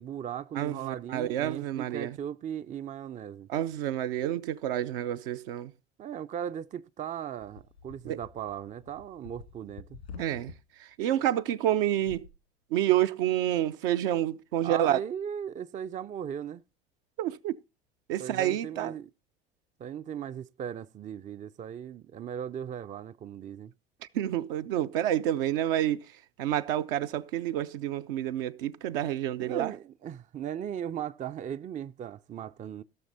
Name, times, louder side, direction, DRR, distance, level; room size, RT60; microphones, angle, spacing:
voice 1, 0.0-3.5 6.0-10.0 14.6-16.6 18.2-19.1 19.8-23.7 29.4-32.8, right 9 dB, 25° right, 0.5 m, -37 dB
voice 2, 0.5-2.2 3.5-5.7 8.0-8.2 10.2-12.3 12.7-15.0 17.2-17.6 18.1-19.0 24.1-29.7, right 12 dB, 65° right, 0.7 m, -29 dB
sound 1, 7.4-10.6 11.9-12.3, left 6 dB, 85° left, 2.0 m, -48 dB
16.5 x 6.5 x 4.0 m
figure-of-eight pair, 65°, 30 cm